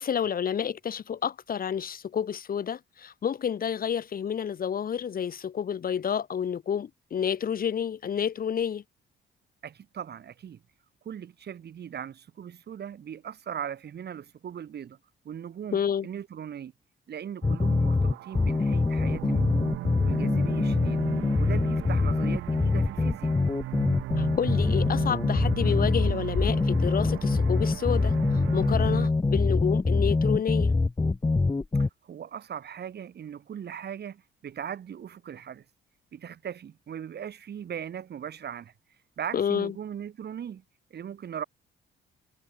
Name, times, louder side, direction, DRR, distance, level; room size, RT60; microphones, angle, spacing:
voice 1, 0.0-8.8 15.7-16.1 24.2-30.7 39.3-39.7, left 8 dB, 45° left, 1.1 m, -29 dB
voice 2, 9.6-10.6 11.0-15.0 15.2-15.8 16.0-16.7 17.1-19.7 20.0-21.0 21.4-23.3 31.8-35.6 36.1-38.7 39.2-40.6 40.9-41.4, right 8 dB, 55° right, 2.9 m, -39 dB
sound 1, 17.4-31.9, left 3 dB, 20° left, 1.7 m, -24 dB
sound 2, 17.4-29.1, right 16 dB, 85° right, 1.5 m, -37 dB
cardioid pair, 90°, 20 cm